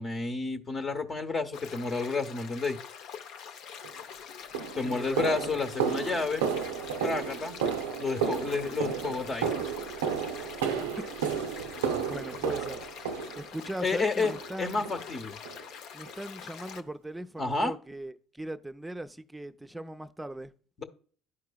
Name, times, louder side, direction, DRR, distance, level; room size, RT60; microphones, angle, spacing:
voice 1, 0.0-2.8 4.7-6.5 7.0-7.5 8.0-9.5 13.8-14.3 14.6-15.4 17.4-17.7 20.8-20.9, left 3 dB, 40° left, 0.9 m, -30 dB
sound 1, 1.5-16.8, left 7 dB, 65° left, 0.5 m, -45 dB
sound 2, 3.8-4.0 4.5-13.8 14.2-14.6 14.8-15.1 15.5-15.6 16.1-16.2 16.7-16.8, right 7 dB, 85° right, 0.4 m, -32 dB
voice 2, 4.8-5.5 10.6-11.2 12.0-12.9 13.3-14.9 15.9-20.5, right 1 dB, 10° right, 0.5 m, -39 dB
11.0 x 4.7 x 2.3 m
hypercardioid pair, 60°, 0 cm